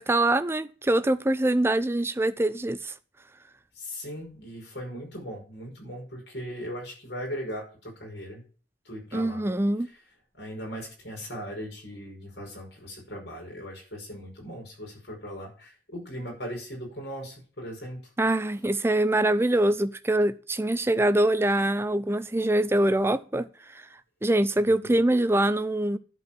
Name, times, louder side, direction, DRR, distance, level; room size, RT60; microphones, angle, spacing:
voice 1, 0.0-2.9 9.1-9.9 18.2-23.5 23.7-23.8 24.2-26.0, right 1 dB, 15° right, 0.5 m, -24 dB
voice 2, 3.8-8.4 8.9-9.5 10.4-18.0 24.6-25.0, equal, 70° left, 5.3 m, -38 dB
11.0 x 4.7 x 7.4 m
head